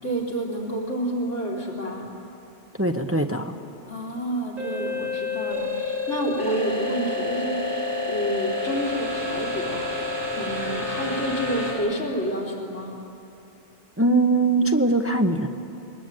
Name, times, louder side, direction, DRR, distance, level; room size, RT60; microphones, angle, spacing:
voice 1, 0.0-2.1 3.9-13.0, right 1 dB, 90° left, -3 dB, 3.9 m, -29 dB
voice 2, 2.8-3.6 14.0-15.5, right 2 dB, 15° right, 6 dB, 0.8 m, -21 dB
sound 1, 4.6-11.7, left 3 dB, 45° right, 6.9 m, -29 dB
23.0 x 19.5 x 9.1 m, 2.8 s
omnidirectional pair, 1.2 m